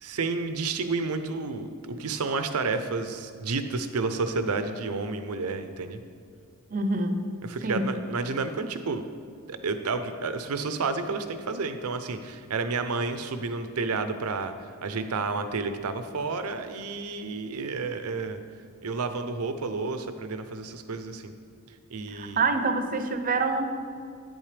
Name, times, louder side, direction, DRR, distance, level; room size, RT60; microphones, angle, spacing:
voice 1, 0.0-6.0 7.4-9.0 9.5-14.5 14.8-18.4 18.8-21.3 21.9-22.4, right 4 dB, 90° right, 9 dB, 0.6 m, -30 dB
voice 2, 6.7-7.3 7.6-7.9 22.1-23.7, right 3 dB, 40° right, 7 dB, 0.6 m, -26 dB
8.9 x 8.8 x 3.4 m, 2.4 s
head